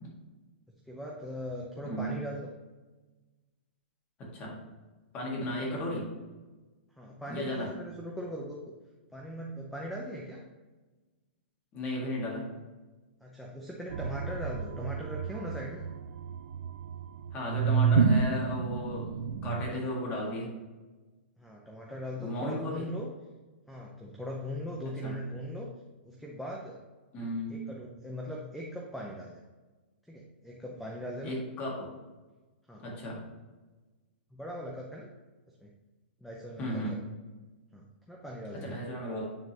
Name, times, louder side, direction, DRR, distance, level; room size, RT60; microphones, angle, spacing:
voice 1, 0.9-2.5 7.0-8.7 9.1-10.4 13.2-15.9 21.4-23.1 23.7-25.7 26.0-26.8 27.5-29.4 30.1-31.3 32.7-32.8 34.3-35.1 35.6-35.7 36.2-37.0 37.7-38.8, equal, ahead, -2 dB, 0.6 m, -40 dB
voice 2, 4.2-4.6 5.1-6.1 7.3-7.7 11.7-12.5 17.3-19.1 19.4-20.5 22.2-22.9 25.0-25.2 27.1-27.6 31.2-31.9 32.8-33.2 36.6-37.0 38.5-39.2, left 1 dB, 25° left, -2 dB, 1.9 m, -35 dB
sound 1, 13.9-19.6, right 6 dB, 80° right, 0.5 m, -29 dB
9.1 x 3.7 x 2.9 m, 1.2 s
hypercardioid pair, 155°, 6 cm